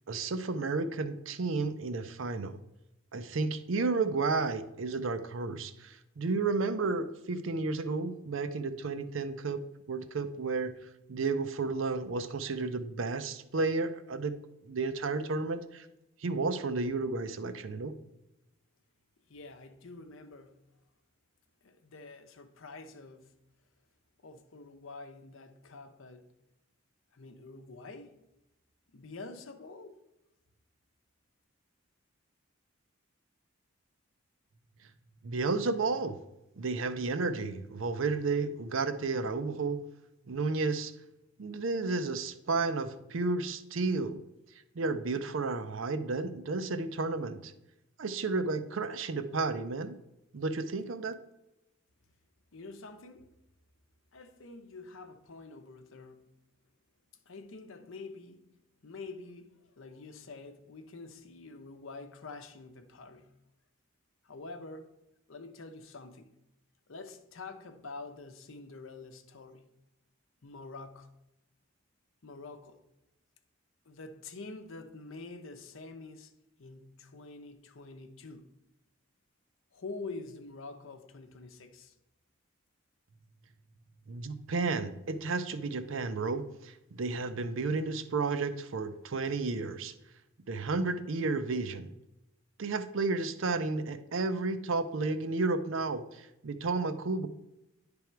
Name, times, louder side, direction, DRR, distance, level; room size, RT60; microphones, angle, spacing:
voice 1, 0.1-2.6 3.1-10.8 11.1-14.4 14.6-15.9 16.2-17.9 35.2-36.2 36.6-39.8 40.3-40.9 41.4-44.2 44.7-47.5 48.0-50.0 50.3-51.1 84.1-89.9 90.5-91.9 92.6-97.3, right 3 dB, 70° right, 0.5 m, -32 dB
voice 2, 19.3-20.6 21.6-23.3 24.2-26.3 27.1-28.2 28.9-30.0 52.5-53.3 54.1-56.2 57.3-58.5 58.8-63.3 64.2-64.9 65.3-66.4 66.9-69.6 70.4-71.1 72.2-72.8 73.9-76.3 76.6-78.5 79.7-81.9, left 3 dB, 70° left, 0.7 m, -47 dB
10.0 x 3.5 x 4.5 m
head